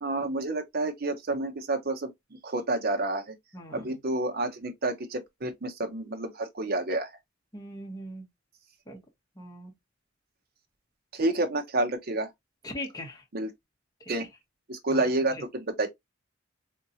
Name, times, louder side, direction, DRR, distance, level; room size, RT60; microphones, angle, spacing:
voice 1, 0.0-2.1 2.4-3.3 3.7-7.1 11.1-12.3 13.3-13.5 14.1-14.3 14.7-15.9, right 2 dB, 50° right, 0.7 m, -29 dB
voice 2, 3.5-3.9 7.5-8.2 8.9-9.0 9.4-9.7 12.6-13.2 14.9-15.0 15.3-15.4, left 1 dB, 20° left, 1.1 m, -40 dB
3.7 x 2.7 x 2.7 m
head